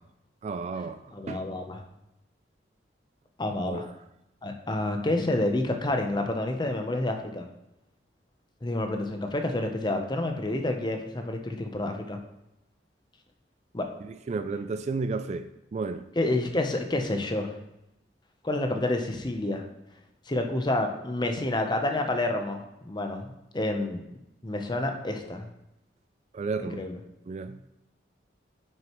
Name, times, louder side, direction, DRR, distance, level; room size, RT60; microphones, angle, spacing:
voice 1, 0.4-1.0 1.3-1.5 3.6-3.9 14.0-16.0 26.3-26.8 27.3-27.6, right 4 dB, 40° right, 11 dB, 0.3 m, -32 dB
voice 2, 1.1-1.8 3.4-3.9 4.4-7.5 8.6-12.2 13.7-13.9 16.2-17.5 18.4-19.6 20.3-24.0 24.4-25.5 26.6-27.0, left 2 dB, 25° left, 4 dB, 0.8 m, -29 dB
8.9 x 6.5 x 3.1 m, 0.87 s
head